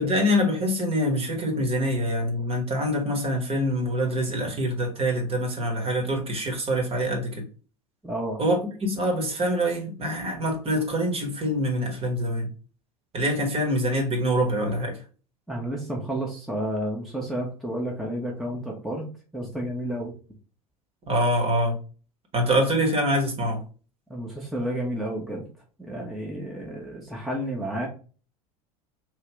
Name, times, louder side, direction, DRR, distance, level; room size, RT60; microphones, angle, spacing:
voice 1, 0.0-7.4 8.4-12.5 13.1-15.0 21.1-21.8 22.3-23.6, equal, 30° right, 1.3 m, -25 dB
voice 2, 8.0-8.4 15.5-19.1 19.3-20.1 24.1-25.4 25.8-27.9, right 1 dB, ahead, 0.9 m, -31 dB
3.1 x 2.7 x 3.3 m
figure-of-eight pair, 80°, 19 cm